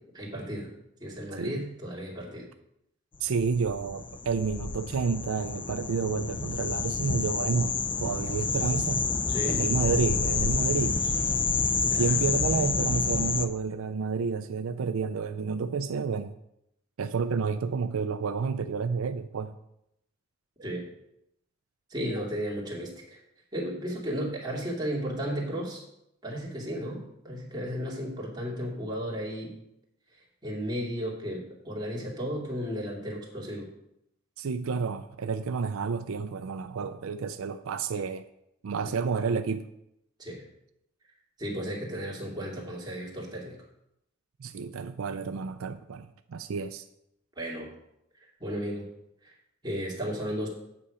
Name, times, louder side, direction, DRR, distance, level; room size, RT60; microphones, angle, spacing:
voice 1, 0.1-0.7 1.0-2.5 9.3-9.6 11.9-12.1 20.6-20.9 21.9-23.2 23.5-25.8 26.2-29.5 30.4-33.7 40.2-40.4 41.4-43.6 47.4-47.7 48.2-48.8 49.2-49.3 49.6-50.5, equal, 20° right, -4 dB, 2.4 m, -34 dB
voice 2, 3.2-9.1 9.4-11.0 11.8-16.3 17.0-19.6 27.7-27.8 34.4-38.3 38.6-39.7 44.4-46.8, right 5 dB, 85° right, 10 dB, 0.4 m, -30 dB
sound 1, 3.3-13.5, left 4 dB, 25° left, 0.5 m, -28 dB
8.3 x 6.8 x 5.0 m, 0.81 s
head